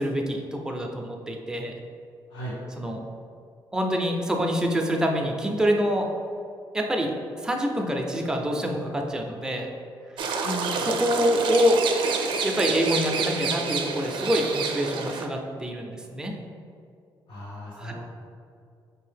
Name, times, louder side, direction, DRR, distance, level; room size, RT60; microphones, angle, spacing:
voice 1, 0.0-1.7 2.8-3.0 3.7-6.1 6.7-7.1 7.4-9.7 10.8-11.8 12.4-16.3 17.8-17.9, equal, 10° right, 1 dB, 0.5 m, -26 dB
sound 1, 10.2-15.3, right 5 dB, 70° right, 0.4 m, -28 dB
voice 2, 10.4-10.8 17.3-17.9, equal, 80° left, -11 dB, 1.1 m, -35 dB
5.0 x 2.7 x 3.3 m, 2.4 s
cardioid pair, 100°, 9 cm